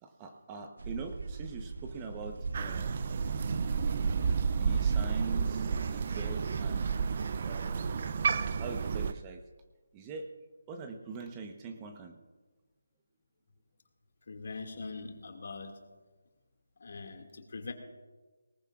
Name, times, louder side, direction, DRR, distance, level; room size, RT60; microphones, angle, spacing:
voice 1, 0.0-3.0 4.5-6.9 7.5-7.9 8.6-9.4 9.9-10.3 10.7-12.3, right 4 dB, 20° right, 5 dB, 1.0 m, -43 dB
sound 1, 0.8-9.2, right 4 dB, 60° right, 0.9 m, -39 dB
Crow, 2.5-9.1, right 6 dB, 40° right, 0.4 m, -31 dB
voice 2, 14.3-15.8 16.8-17.7, left 4 dB, 55° left, 4 dB, 2.1 m, -42 dB
20.5 x 19.0 x 2.5 m, 1.3 s
figure-of-eight pair, 160°, 0 cm